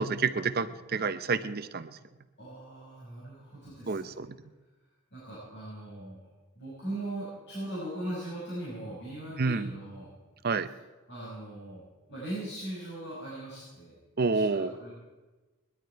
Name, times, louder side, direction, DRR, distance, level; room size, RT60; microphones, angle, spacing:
voice 1, 0.0-2.0 3.9-4.4 9.4-9.7 10.4-10.7 14.2-14.7, right 4 dB, 45° right, 11 dB, 0.7 m, -29 dB
voice 2, 2.4-4.2 5.1-6.3 6.5-10.1 11.1-11.8 12.1-14.9, right 1 dB, 55° left, -9 dB, 6.2 m, -40 dB
20.5 x 12.0 x 4.6 m, 1.2 s
head